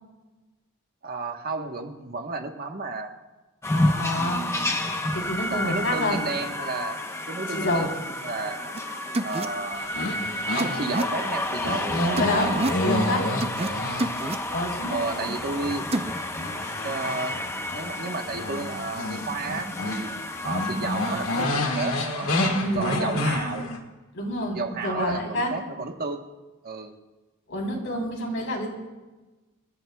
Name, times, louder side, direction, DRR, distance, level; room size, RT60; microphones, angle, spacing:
voice 1, 1.0-3.1 4.2-4.9 5.5-8.8 9.2-9.9 10.5-12.9 13.6-13.8 14.9-15.9 16.8-17.4 17.7-20.1 20.4-22.3 22.7-23.7 24.5-26.2 26.6-26.9, right 3 dB, 45° right, 4 dB, 1.2 m, -32 dB
sound 1, 3.6-21.4, left 1 dB, 10° left, 0.9 m, -31 dB
voice 2, 3.7-4.4 5.1-6.2 7.5-7.9 12.0-13.2 14.5-15.3 22.6-23.2 24.1-25.5 27.5-28.7, left 1 dB, 60° left, -1 dB, 3.5 m, -28 dB
sound 2, 8.8-8.9 9.1-9.5 10.6-11.0 12.2-12.8 13.4-13.7 14.0-14.4 15.9-16.1, right 2 dB, 30° right, 0.6 m, -27 dB
sound 3, 9.7-15.0 15.4-20.1 20.4-23.8, left 1 dB, 80° left, 1.9 m, -29 dB
27.0 x 14.0 x 2.3 m, 1.2 s
head